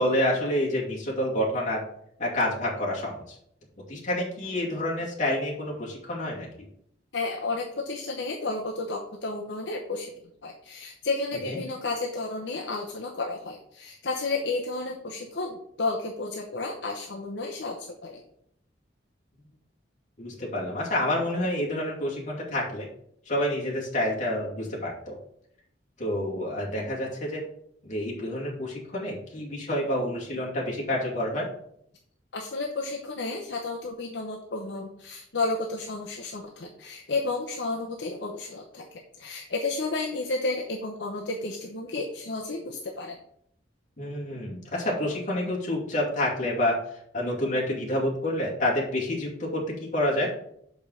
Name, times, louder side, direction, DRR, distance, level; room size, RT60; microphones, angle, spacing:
voice 1, 0.0-1.8 2.2-3.4 3.9-6.5 11.5-11.6 20.2-22.9 23.3-25.2 26.0-27.4 27.8-31.5 44.0-46.8 47.1-50.3, left 1 dB, 40° left, -3 dB, 2.3 m, -28 dB
voice 2, 7.1-10.1 10.4-18.2 32.3-43.2, left 3 dB, 65° left, 1 dB, 0.8 m, -32 dB
6.3 x 5.3 x 5.4 m, 0.70 s
head